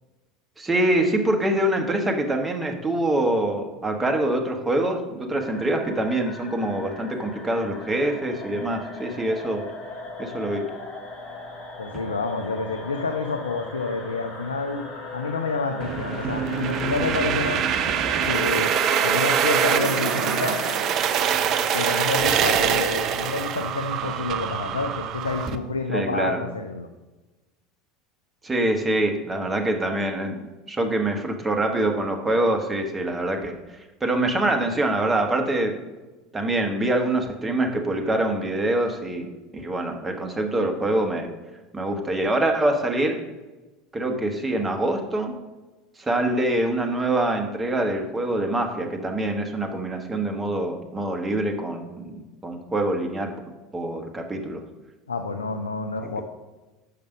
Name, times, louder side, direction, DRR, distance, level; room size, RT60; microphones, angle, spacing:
voice 1, 0.6-9.6 10.2-10.6 25.9-26.4 28.4-33.5 34.0-35.8 36.3-41.3 41.7-43.2 43.9-45.4 46.0-53.3 53.7-54.6 56.2-56.3, right 1 dB, 15° right, 3 dB, 1.1 m, -25 dB
sound 1, 5.3-20.8, left 2 dB, 45° left, 2.3 m, -37 dB
voice 2, 11.8-17.7 18.2-18.7 19.0-20.6 21.7-26.9 55.1-56.2, left 3 dB, 85° left, 6 dB, 0.4 m, -28 dB
sound 2, 15.8-25.5, right 8 dB, 45° right, 0.5 m, -24 dB
6.7 x 5.3 x 5.0 m, 1.1 s
figure-of-eight pair, 75°, 0 cm